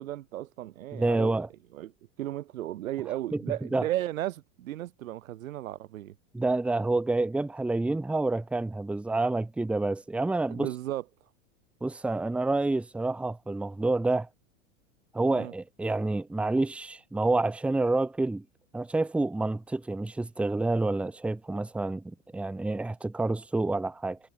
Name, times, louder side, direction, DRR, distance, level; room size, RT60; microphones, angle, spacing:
voice 1, 0.0-1.5 1.7-1.9 2.2-6.1 10.5-11.0 15.3-15.5, right 14 dB, 85° right, 3.3 m, -35 dB
voice 2, 0.9-1.5 3.3-3.4 3.7-3.9 6.3-10.7 11.8-14.3 15.1-18.4 18.7-24.2, right 2 dB, 5° right, 1.3 m, -28 dB
supercardioid pair, 165°, 40 cm